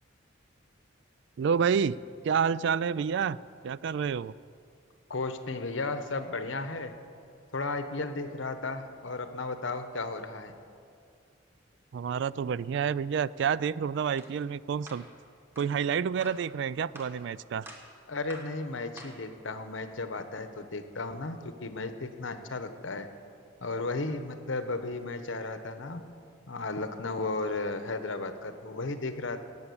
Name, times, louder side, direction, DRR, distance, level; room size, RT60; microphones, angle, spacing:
voice 1, 1.4-2.0 2.2-3.4 3.6-4.3 11.9-15.0 15.6-17.7, right 7 dB, 65° right, 20 dB, 0.3 m, -28 dB
voice 2, 5.1-6.9 7.5-10.5 18.1-23.1 23.6-26.0 26.5-29.4, left 3 dB, 70° left, 9 dB, 1.0 m, -34 dB
sound 1, 14.2-14.3 14.9-15.1 15.6-15.7 16.2-16.5 17.0-17.2 17.7-17.9 18.3-18.6 19.0-19.2, right 1 dB, 10° right, 1.6 m, -47 dB
17.5 x 7.1 x 8.5 m, 2.4 s
head